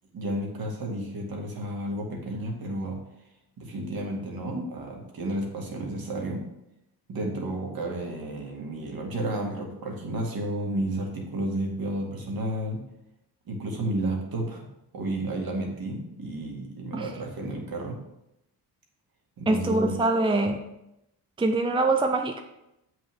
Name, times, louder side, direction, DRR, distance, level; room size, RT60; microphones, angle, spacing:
voice 1, 0.1-3.0 3.6-6.4 7.1-12.8 13.5-14.7 14.9-18.0 19.4-19.9, right 1 dB, 60° right, 0 dB, 2.0 m, -32 dB
voice 2, 19.5-20.6 21.4-22.4, right 2 dB, 15° right, 4 dB, 0.6 m, -24 dB
7.4 x 6.4 x 3.6 m, 0.85 s
cardioid pair, 90°, 40 cm